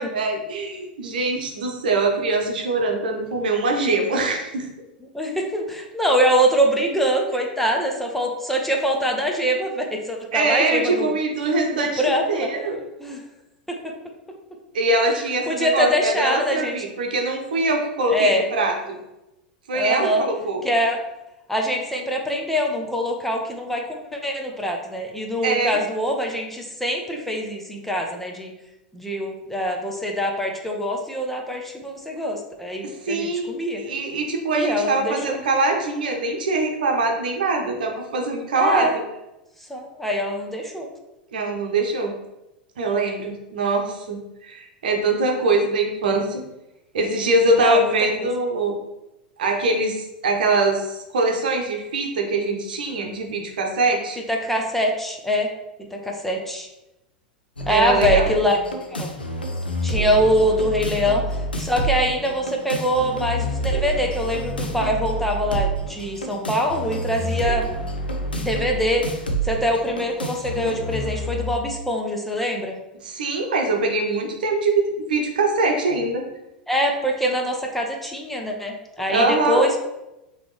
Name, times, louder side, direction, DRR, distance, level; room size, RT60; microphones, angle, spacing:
voice 1, 0.0-4.7 10.3-12.8 14.7-19.0 19.7-20.6 25.4-25.8 32.8-33.5 33.8-38.9 41.3-42.1 42.8-46.4 46.9-48.7 49.4-54.2 57.7-58.3 73.0-76.2 79.1-79.6, right 2 dB, 65° right, 2 dB, 0.9 m, -23 dB
voice 2, 5.1-11.1 11.7-12.5 13.0-13.2 13.7-13.9 15.5-16.7 18.1-18.5 19.7-20.3 20.6-21.0 21.5-28.5 28.9-33.8 34.6-35.4 38.6-39.0 39.7-40.9 47.6-47.9 48.2-48.3 54.3-55.5 55.9-56.7 57.7-58.6 58.9-59.1 59.8-61.2 61.6-67.7 68.4-69.1 69.4-72.8 76.7-79.8, equal, 5° left, 1 dB, 0.7 m, -23 dB
sound 1, 57.6-71.6, right 1 dB, 85° left, 0.6 m, -28 dB
5.1 x 3.0 x 3.1 m, 0.95 s
figure-of-eight pair, 85°, 5 cm